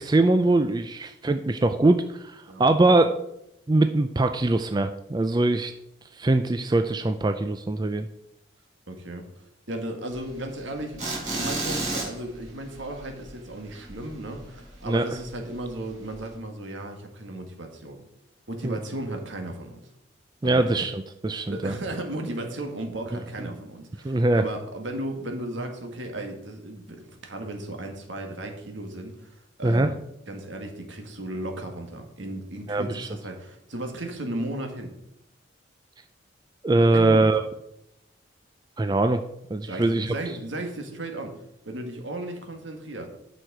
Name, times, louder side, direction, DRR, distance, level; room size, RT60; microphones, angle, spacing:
voice 1, 0.0-3.2 3.7-5.7 6.1-8.1 14.9-15.0 18.6-18.8 20.4-21.7 24.0-24.4 29.6-29.9 32.7-33.1 36.6-37.4 38.8-39.2 39.5-40.1, right 2 dB, 20° right, 8 dB, 0.4 m, -22 dB
voice 2, 8.9-18.0 18.5-19.8 20.4-20.7 21.5-30.0 30.3-34.9 36.9-37.3 39.6-43.1, right 1 dB, 75° right, 3 dB, 1.8 m, -35 dB
sound 1, 10.1-14.8 15.1-15.3 15.7-15.8 16.1-16.3, right 2 dB, 40° right, 3.8 m, -32 dB
9.2 x 6.3 x 4.8 m, 0.81 s
head